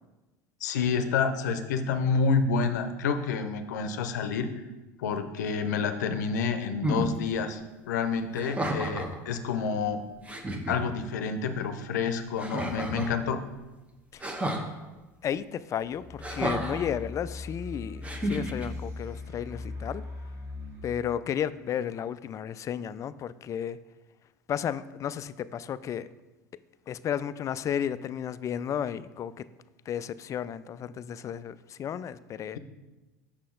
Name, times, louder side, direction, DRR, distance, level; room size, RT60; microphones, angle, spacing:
voice 1, 0.6-4.5 5.0-7.6 7.9-10.0 10.7-13.4, left 5 dB, 75° left, 8 dB, 0.6 m, -28 dB
sound 1, 6.8-7.1 8.3-9.2 9.9-10.0 10.3-10.8 12.4-13.2 14.2-14.7 16.2-16.9 18.0-18.7, right 1 dB, 15° right, 1.0 m, -31 dB
voice 2, 15.2-20.0 20.8-23.8 24.5-26.1 26.9-29.4 29.9-32.6, left 9 dB, 35° left, 15 dB, 0.3 m, -33 dB
sound 2, 15.9-20.9, left 3 dB, 40° right, 1.9 m, -40 dB
6.3 x 5.7 x 3.8 m, 1.1 s
hypercardioid pair, 80°, 9 cm